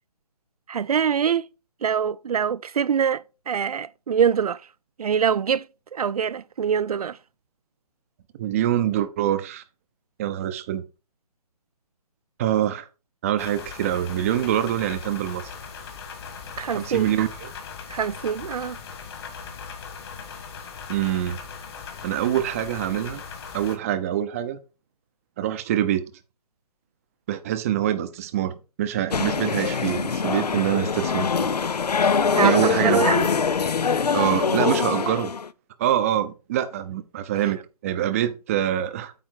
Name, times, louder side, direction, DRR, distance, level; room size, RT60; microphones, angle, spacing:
voice 1, 0.7-1.5 1.8-4.6 5.0-5.7 5.9-7.2 16.6-17.1 17.9-18.8 32.3-33.3, right 7 dB, 70° right, 0.4 m, -24 dB
voice 2, 8.4-9.6 10.2-10.8 12.4-12.9 13.2-15.5 16.7-17.5 20.9-21.4 22.0-23.2 23.5-24.6 25.4-26.0 27.3-31.5 32.4-33.0 34.1-35.3 35.8-39.1, right 11 dB, 20° right, 0.6 m, -25 dB
sound 1, 13.4-23.8, left 6 dB, 40° left, 1.8 m, -39 dB
sound 2, 29.1-35.5, left 5 dB, 85° left, 0.6 m, -23 dB
8.9 x 3.4 x 6.3 m
figure-of-eight pair, 150°, 20 cm